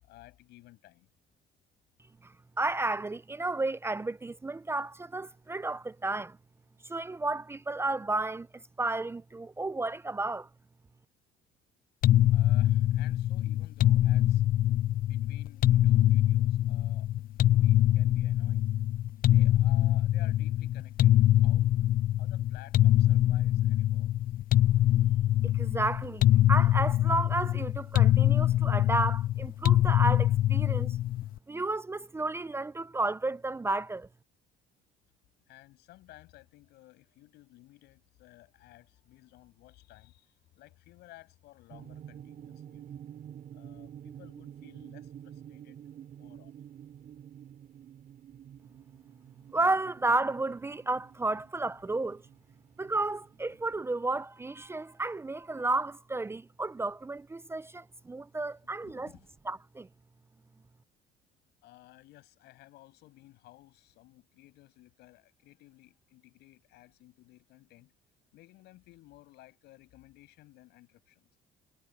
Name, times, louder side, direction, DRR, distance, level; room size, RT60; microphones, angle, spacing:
voice 1, 0.0-1.1 12.3-14.4 14.9-17.1 17.5-18.7 19.2-21.8 22.2-24.1 35.5-43.1 43.5-45.8 46.2-46.6 58.8-59.3 61.6-67.9 68.3-71.3, left 17 dB, 85° left, 7.6 m, -56 dB
voice 2, 2.2-6.4 6.8-10.5 25.4-31.0 31.5-34.1 49.5-52.2 52.8-59.1 59.5-59.9, right 2 dB, 15° right, 0.5 m, -32 dB
sound 1, 12.0-31.3, left 13 dB, 60° left, 0.6 m, -24 dB
sound 2, 41.7-53.7, right 10 dB, 55° right, 4.1 m, -49 dB
cardioid pair, 110°, 17 cm